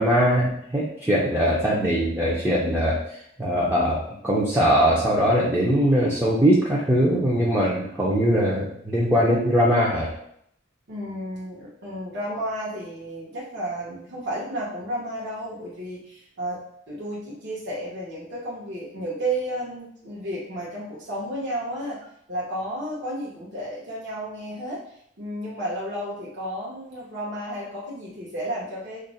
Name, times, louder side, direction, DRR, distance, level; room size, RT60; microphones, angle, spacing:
voice 1, 0.0-3.0 3.4-10.1, equal, 10° right, -6 dB, 0.4 m, -21 dB
voice 2, 10.9-22.0 22.3-24.8 25.2-29.0, right 1 dB, 60° right, -7 dB, 0.8 m, -32 dB
2.4 x 2.0 x 3.8 m, 0.70 s
head